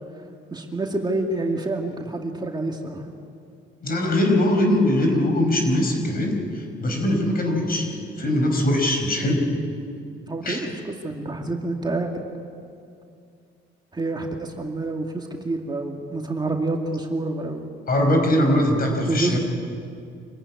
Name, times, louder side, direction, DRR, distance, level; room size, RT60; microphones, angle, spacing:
voice 1, 0.5-3.0 9.2-9.4 10.3-12.3 13.9-17.7 19.1-19.4, right 2 dB, 20° right, 1 dB, 2.3 m, -28 dB
voice 2, 3.8-9.4 10.4-10.6 17.9-19.4, left 1 dB, 50° left, 3 dB, 5.2 m, -21 dB
26.0 x 15.0 x 9.7 m, 2.4 s
cardioid pair, 90°, 20 cm